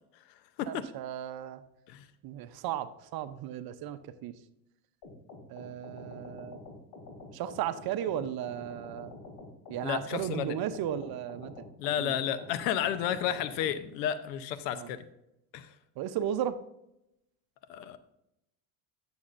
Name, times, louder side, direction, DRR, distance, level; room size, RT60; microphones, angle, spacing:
voice 1, 0.7-1.6 2.2-4.3 5.5-6.6 7.3-9.1 9.7-11.5 12.0-12.2 14.7-14.9 16.0-16.6, right 10 dB, 50° right, 12 dB, 0.7 m, -35 dB
sound 1, 5.0-13.7, left 2 dB, 55° left, 2.8 m, -47 dB
voice 2, 9.8-10.6 11.8-15.1 15.5-15.7 17.7-18.0, left 9 dB, 85° left, 12 dB, 0.8 m, -32 dB
9.5 x 7.1 x 2.5 m, 0.84 s
supercardioid pair, 100°, 47 cm